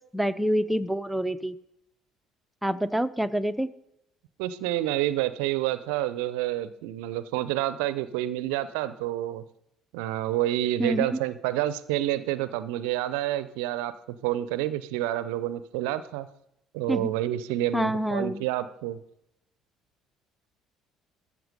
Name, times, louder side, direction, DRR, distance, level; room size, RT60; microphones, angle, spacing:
voice 1, 0.1-1.6 2.6-3.7 10.8-11.2 16.9-17.2 17.7-18.4, equal, 5° right, 11 dB, 0.5 m, -27 dB
voice 2, 4.4-9.4 9.9-13.9 14.2-16.3 16.7-19.0, right 14 dB, 65° right, 15 dB, 0.5 m, -28 dB
13.5 x 7.2 x 5.2 m, 0.80 s
figure-of-eight pair, 55°, 0 cm